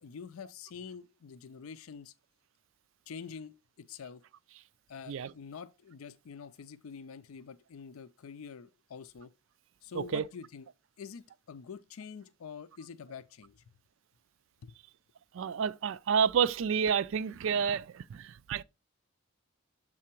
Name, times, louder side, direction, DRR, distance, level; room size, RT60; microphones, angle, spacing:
voice 1, 0.0-2.1 3.1-4.2 4.9-9.3 9.8-10.7 11.0-13.6 14.6-14.7, left 6 dB, 90° left, 0.5 m, -46 dB
voice 2, 15.3-18.6, right 7 dB, 65° right, 0.3 m, -29 dB
7.5 x 3.8 x 4.5 m
head